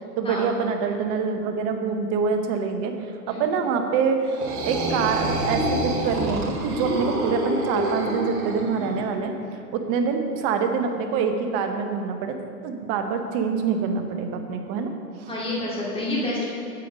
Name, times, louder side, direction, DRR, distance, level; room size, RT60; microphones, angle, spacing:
voice 1, 0.2-2.9 3.3-4.2 4.7-12.4 12.6-14.9 15.2-15.3, right 5 dB, 30° right, 5 dB, 0.8 m, -25 dB
sound 1, 4.2-9.0, right 1 dB, 60° right, 2.2 m, -27 dB
voice 2, 15.3-16.5, left 1 dB, 10° left, -5 dB, 2.1 m, -28 dB
8.5 x 7.7 x 5.2 m, 2.6 s
hypercardioid pair, 135°, 48 cm